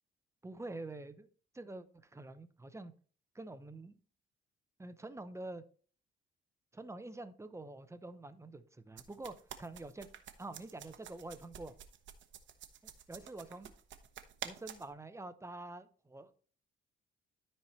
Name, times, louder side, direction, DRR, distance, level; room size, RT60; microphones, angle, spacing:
voice 1, 0.4-1.3 1.5-2.9 3.3-3.9 4.8-5.6 6.7-10.1 10.4-11.7 13.1-13.7 14.4-16.4, right 2 dB, 15° right, 11 dB, 0.8 m, -46 dB
sound 1, 9.0-14.9, right 9 dB, 70° right, 1.0 m, -49 dB
13.0 x 4.4 x 3.2 m, 0.42 s
cardioid pair, 90°, 20 cm